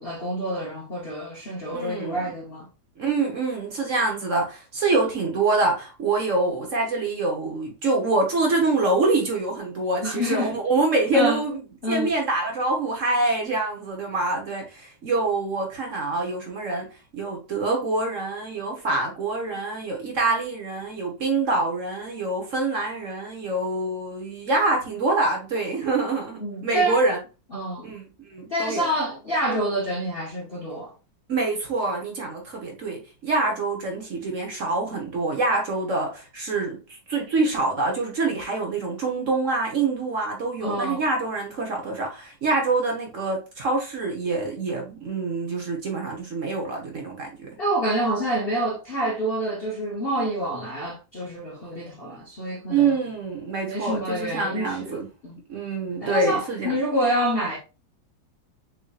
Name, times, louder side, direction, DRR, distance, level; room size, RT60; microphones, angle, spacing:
voice 1, 0.0-2.7 10.0-10.5 11.1-11.4 11.8-12.1 26.4-27.0 27.5-27.9 28.5-30.9 40.6-41.0 47.6-53.0 53.6-55.0 55.2-55.4 56.0-57.6, right 1 dB, 45° left, 0.8 m, -27 dB
voice 2, 1.7-2.3 3.0-27.2 27.8-28.0 28.3-28.8 31.3-36.8 37.1-47.5 52.7-55.1 55.5-56.8, right 3 dB, 50° right, 1.2 m, -25 dB
6.3 x 2.9 x 2.3 m
omnidirectional pair, 2.0 m